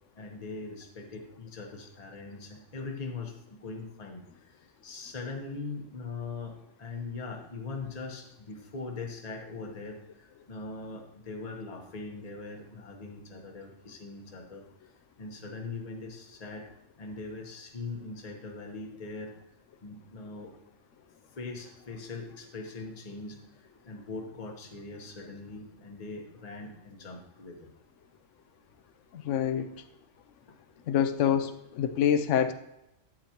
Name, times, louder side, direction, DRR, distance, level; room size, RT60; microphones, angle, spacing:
voice 1, 0.1-14.9 15.2-16.7 17.0-19.3 19.8-20.6 21.4-27.7 30.5-30.6, left 3 dB, 35° left, 2 dB, 1.1 m, -41 dB
voice 2, 29.1-29.7 30.9-32.5, left 9 dB, 80° left, 10 dB, 0.9 m, -26 dB
8.8 x 8.8 x 2.9 m, 0.87 s
omnidirectional pair, 1.3 m